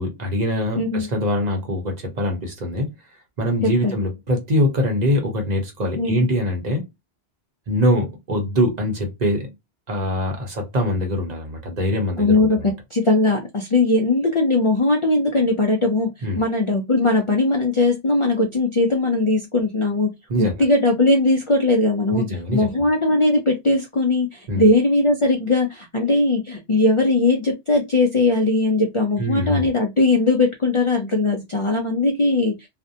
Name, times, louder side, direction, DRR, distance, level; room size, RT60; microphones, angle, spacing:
voice 1, 0.0-2.9 3.4-6.8 7.7-9.5 9.9-12.7 16.2-16.4 20.3-20.5 22.1-22.8 24.5-24.7 29.2-29.7, equal, 45° right, 0.8 m, -23 dB
voice 2, 0.8-1.1 3.8-3.9 6.0-6.2 12.2-12.6 12.9-16.1 16.4-20.1 20.4-22.2 22.5-32.6, left 2 dB, 45° left, 0.4 m, -19 dB
2.5 x 2.1 x 2.6 m
omnidirectional pair, 1.1 m